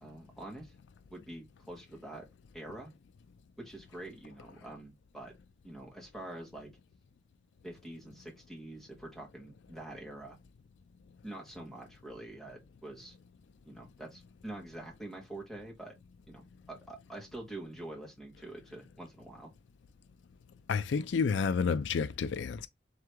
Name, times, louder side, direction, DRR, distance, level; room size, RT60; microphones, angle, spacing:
voice 1, 0.0-0.7 1.1-2.3 2.5-2.9 3.6-5.3 5.6-6.7 7.6-10.4 11.2-13.2 13.6-15.9 16.3-19.5, right 1 dB, ahead, 1.4 m, -46 dB
voice 2, 20.7-22.7, left 5 dB, 75° left, 0.4 m, -30 dB
3.7 x 3.3 x 3.3 m
head